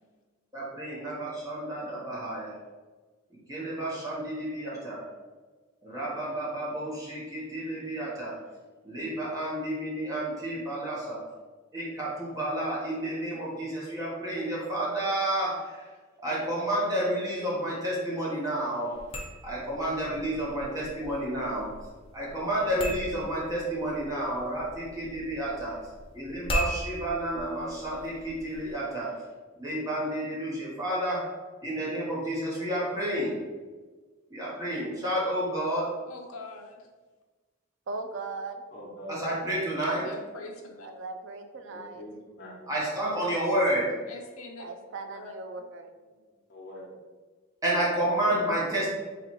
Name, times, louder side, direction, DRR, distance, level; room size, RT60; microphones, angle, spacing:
voice 1, 0.5-2.5 3.3-5.0 5.8-8.3 8.8-11.2 11.7-15.8 16.2-18.9 19.4-21.7 22.1-25.8 26.2-29.1 29.6-31.3 31.6-33.4 34.3-35.9 39.1-40.1 42.7-43.9 47.6-48.9, right 1 dB, 15° right, -6 dB, 0.9 m, -30 dB
sound 1, 18.9-28.7, equal, 25° left, 0.5 m, -39 dB
voice 2, 36.1-36.9 39.9-40.9 44.1-44.7 45.1-45.3, left 2 dB, 80° left, 1 dB, 0.7 m, -43 dB
voice 3, 37.9-38.6 40.8-42.0 44.6-45.8, right 3 dB, 60° right, 6 dB, 0.4 m, -38 dB
voice 4, 38.7-39.3 41.7-42.7 46.5-46.9, equal, 50° left, -4 dB, 1.1 m, -43 dB
4.2 x 3.1 x 3.0 m, 1.4 s
head